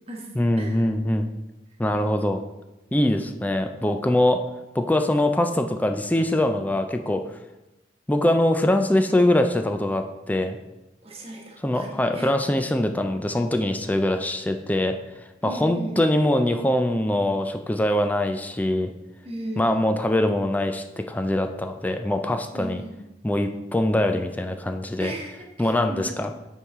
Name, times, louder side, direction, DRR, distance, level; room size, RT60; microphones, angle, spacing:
voice 1, 0.4-1.3 1.8-2.4 2.9-4.4 4.7-7.2 8.1-10.6 11.6-14.9 15.4-18.9 19.6-22.8 23.2-25.1 25.6-26.3, left 1 dB, 10° left, 6 dB, 0.4 m, -23 dB
voice 2, 11.0-12.3 15.4-16.0 19.2-19.8 22.5-22.9 25.0-26.3, right 1 dB, 35° right, -1 dB, 1.3 m, -36 dB
8.4 x 4.6 x 3.6 m, 1.0 s
head